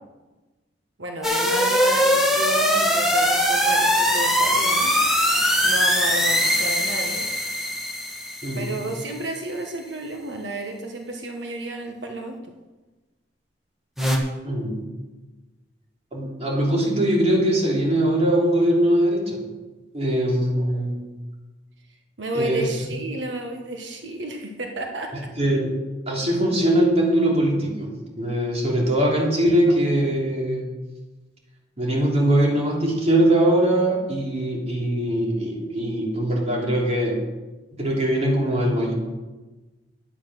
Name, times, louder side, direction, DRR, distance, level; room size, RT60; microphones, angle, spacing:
voice 1, 1.0-5.0 5.6-7.3 8.6-12.3 20.4-20.8 22.2-25.1, right 1 dB, 80° right, 3 dB, 1.3 m, -32 dB
sound 1, 1.2-9.1 14.0-14.2, equal, ahead, 1.5 m, -21 dB
voice 2, 14.4-14.8 16.1-19.4 19.9-21.0 22.3-22.7 25.4-25.8 26.1-30.7 31.8-37.2 37.8-38.9, right 1 dB, 35° right, -2 dB, 3.0 m, -21 dB
10.5 x 8.9 x 6.2 m, 1.2 s
head